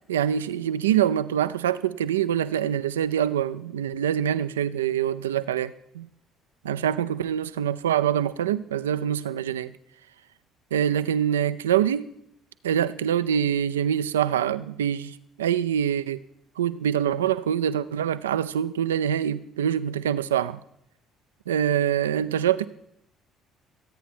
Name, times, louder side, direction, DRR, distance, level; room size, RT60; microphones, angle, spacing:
voice 1, 0.1-6.1 6.6-9.8 10.7-12.1 12.6-16.2 16.6-20.6 21.5-22.7, right 9 dB, 80° right, 14 dB, 0.5 m, -25 dB
25.5 x 9.1 x 4.4 m, 0.77 s
figure-of-eight pair, 55°, 0 cm